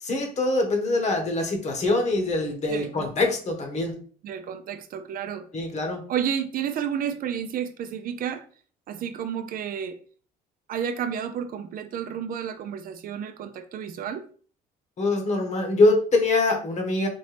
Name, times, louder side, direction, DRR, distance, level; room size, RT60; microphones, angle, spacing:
voice 1, 0.0-3.9 5.5-6.0 15.0-17.1, left 2 dB, 40° left, 3 dB, 1.3 m, -24 dB
voice 2, 4.2-5.5 6.1-8.4 8.9-10.0 10.7-14.3, right 8 dB, 55° right, 9 dB, 0.5 m, -31 dB
4.3 x 2.6 x 3.3 m, 0.43 s
cardioid pair, 110°, 17 cm